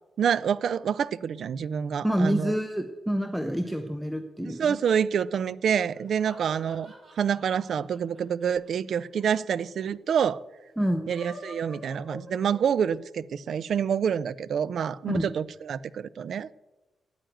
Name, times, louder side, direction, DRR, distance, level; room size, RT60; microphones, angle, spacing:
voice 1, 0.2-2.5 4.4-10.4 11.1-16.6, right 8 dB, 65° right, 0.4 m, -27 dB
voice 2, 2.0-4.7 10.8-11.0 15.1-15.3, equal, 5° right, 0.8 m, -27 dB
sound 1, 5.9-9.2 9.5-9.6 9.8-9.9 10.9-13.0, equal, 40° right, 5.6 m, -47 dB
9.3 x 8.9 x 9.1 m
cardioid pair, 120°, 0 cm